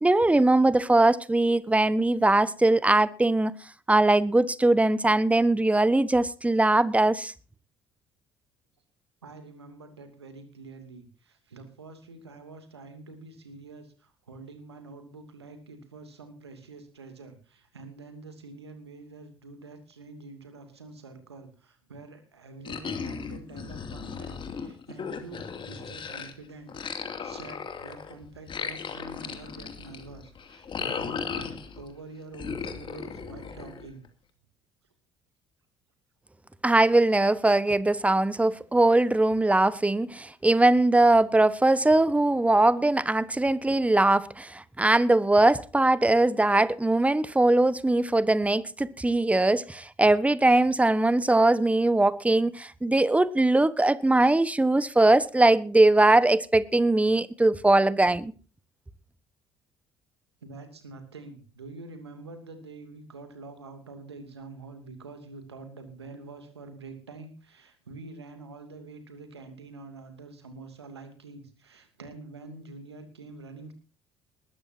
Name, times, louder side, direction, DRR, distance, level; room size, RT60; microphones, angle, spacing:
voice 1, 0.0-3.5 3.9-7.3 36.6-58.3, right 2 dB, 10° right, 1.2 m, -21 dB
voice 2, 9.2-26.7 27.1-34.0 40.1-40.2 60.4-73.7, right 3 dB, 85° right, 2.7 m, -46 dB
sound 1, 22.7-26.3 26.7-31.9 32.3-34.1, left 6 dB, 40° left, 2.6 m, -36 dB
20.5 x 13.5 x 2.8 m
figure-of-eight pair, 55°, 13 cm